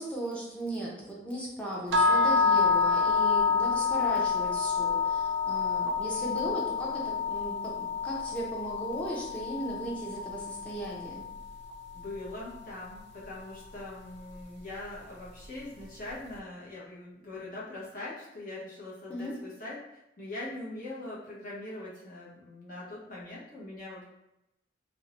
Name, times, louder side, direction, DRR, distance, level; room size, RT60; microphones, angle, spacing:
voice 1, 0.0-11.2 19.1-19.3, right 1 dB, 5° left, -4 dB, 0.6 m, -37 dB
sound 1, 1.9-12.0, left 5 dB, 65° right, 0.3 m, -28 dB
voice 2, 11.9-19.8 20.2-24.0, left 2 dB, 50° left, -7 dB, 0.9 m, -42 dB
2.6 x 2.1 x 2.9 m, 0.89 s
head